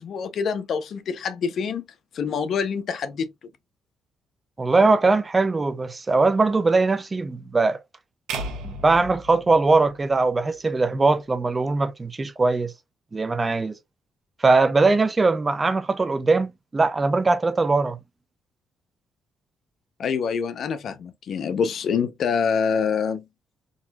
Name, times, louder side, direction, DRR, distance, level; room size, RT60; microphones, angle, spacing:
voice 1, 0.0-1.9 2.1-3.3 20.0-23.2, left 6 dB, 60° left, 0.7 m, -26 dB
voice 2, 4.6-7.8 8.6-12.7 13.1-13.8 14.4-18.0, right 3 dB, 25° right, 0.5 m, -21 dB
sound 1, 8.3-10.6, right 2 dB, 85° right, 0.9 m, -35 dB
4.0 x 2.7 x 2.3 m
cardioid pair, 90°, 0 cm